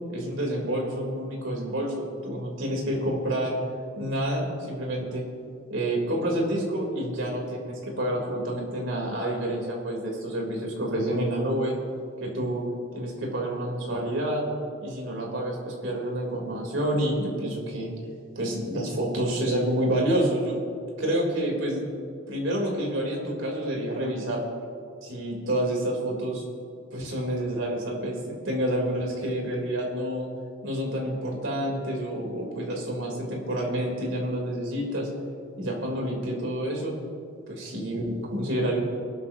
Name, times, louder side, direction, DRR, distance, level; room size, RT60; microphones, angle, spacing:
voice 1, 0.1-3.6 4.0-5.3 5.7-11.8 12.2-12.7 12.9-14.5 14.8-17.9 18.4-20.6 21.0-21.9 22.3-24.4 25.0-26.4 26.9-30.3 30.6-35.1 35.6-36.9 37.5-38.8, right 1 dB, 80° right, -1 dB, 3.7 m, -28 dB
23.5 x 12.0 x 2.9 m, 2.4 s
head